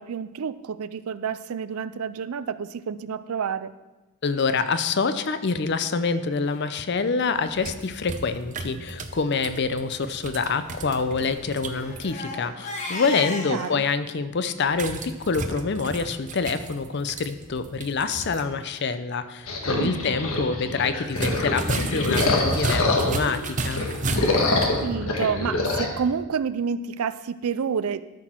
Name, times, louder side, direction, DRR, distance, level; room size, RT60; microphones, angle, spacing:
voice 1, 0.0-3.7 13.5-13.8 19.6-20.1 24.8-28.0, right 6 dB, 80° right, 15 dB, 0.4 m, -29 dB
voice 2, 4.2-23.8, left 4 dB, 50° left, 11 dB, 0.5 m, -26 dB
Crying sobbing, 6.9-7.1 7.8-7.9 8.2-8.3 8.6-8.8 9.3-9.5 10.7-13.8, left 2 dB, 30° left, 1.2 m, -36 dB
sound 1, 7.4-12.1 14.7-18.5 18.8-18.9 21.1-24.8, right 3 dB, 35° right, 0.6 m, -33 dB
sound 2, 19.5-23.3 23.7-25.9, left 2 dB, 70° left, 1.4 m, -25 dB
13.0 x 6.1 x 4.4 m, 1.1 s
head